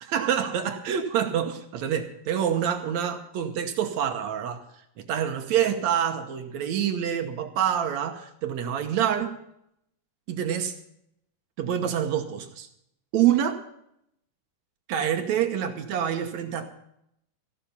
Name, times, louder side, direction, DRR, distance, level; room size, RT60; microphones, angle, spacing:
voice 1, 0.0-4.6 5.1-9.4 10.3-10.8 11.6-12.7 13.1-13.6 14.9-16.8, right 9 dB, 65° right, 6 dB, 2.1 m, -26 dB
15.0 x 11.5 x 5.4 m, 0.75 s
omnidirectional pair, 3.8 m